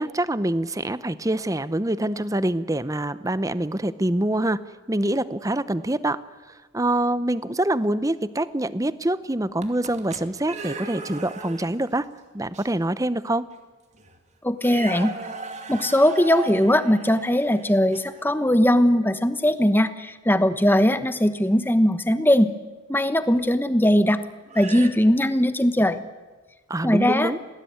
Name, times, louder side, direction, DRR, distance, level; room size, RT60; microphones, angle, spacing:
voice 1, 0.0-4.6 4.9-6.2 6.5-12.1 12.3-13.5 26.7-27.4, right 1 dB, 15° right, 15 dB, 0.7 m, -25 dB
sound 1, 9.6-11.9 12.5-12.7 13.5-13.6 13.9-14.2 14.6-18.2 21.4-21.6 23.3-23.4 24.4-24.9, right 3 dB, 30° right, 2.4 m, -37 dB
voice 2, 14.4-15.1 15.7-22.5 22.9-24.2 24.5-26.0 26.8-27.3, equal, 10° left, 11 dB, 1.1 m, -20 dB
27.0 x 19.5 x 9.4 m, 1.3 s
head